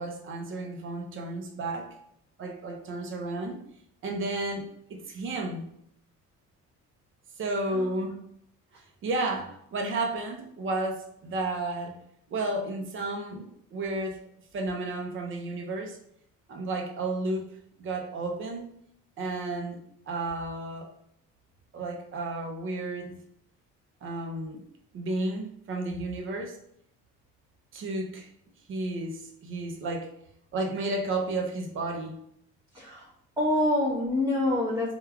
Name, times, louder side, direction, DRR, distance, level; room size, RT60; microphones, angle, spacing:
voice 1, 0.0-1.9 2.4-3.6 4.0-5.7 7.4-8.2 9.0-12.0 12.3-13.5 13.7-14.2 14.5-16.0 16.5-17.5 17.8-18.7 19.2-19.8 20.1-20.9 21.7-23.2 24.0-24.6 24.9-26.6 27.7-28.3 28.7-30.1 30.5-32.2, right 2 dB, 40° right, 3 dB, 0.5 m, -32 dB
voice 2, 32.7-33.1 33.4-34.9, left 1 dB, 10° right, -10 dB, 0.9 m, -26 dB
3.2 x 2.3 x 2.3 m, 0.72 s
cardioid pair, 130°, 32 cm